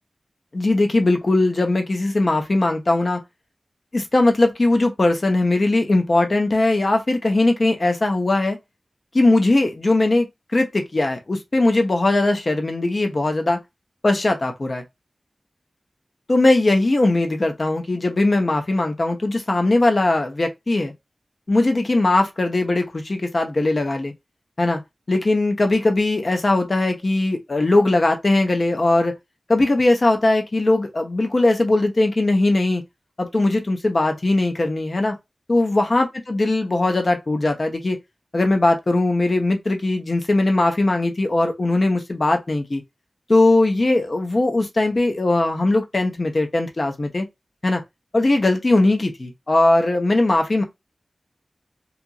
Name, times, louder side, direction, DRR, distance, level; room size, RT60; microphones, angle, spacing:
voice 1, 0.5-3.2 3.9-8.6 9.1-13.6 14.0-14.8 16.3-20.9 21.5-24.1 24.6-24.8 25.1-29.2 29.5-32.8 33.2-35.2 35.5-38.0 38.3-42.8 43.3-47.3 47.6-47.8 48.1-50.6, left 2 dB, 50° left, 0.7 m, -19 dB
2.9 x 2.5 x 2.3 m
wide cardioid pair, 85°, 0 cm